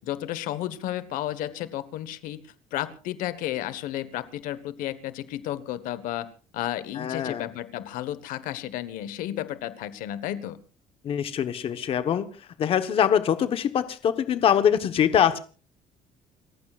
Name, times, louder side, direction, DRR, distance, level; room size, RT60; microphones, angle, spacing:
voice 1, 0.0-6.3 6.5-10.6, left 13 dB, 85° left, 13 dB, 1.3 m, -32 dB
voice 2, 7.0-7.5 11.0-15.4, left 9 dB, 45° left, 10 dB, 1.2 m, -23 dB
29.5 x 15.0 x 2.5 m, 0.37 s
cardioid pair, 160°, 14 cm